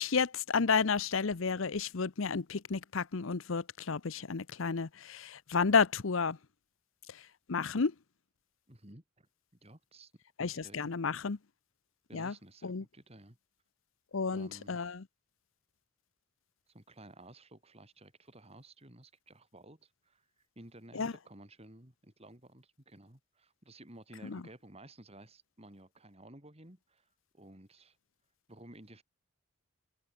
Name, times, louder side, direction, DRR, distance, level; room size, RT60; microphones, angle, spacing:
voice 1, 0.0-6.4 7.5-7.9 10.4-11.4 12.1-12.3 12.6-12.8 14.1-15.0 20.9-21.1 24.2-24.4, left 5 dB, 70° left, 0.7 m, -31 dB
voice 2, 8.7-9.3 9.6-10.1 10.6-10.9 12.1-13.4 14.3-14.8 16.7-20.3 20.6-27.1 27.3-28.0 28.5-29.0, right 1 dB, 30° right, 3.7 m, -54 dB
open air
head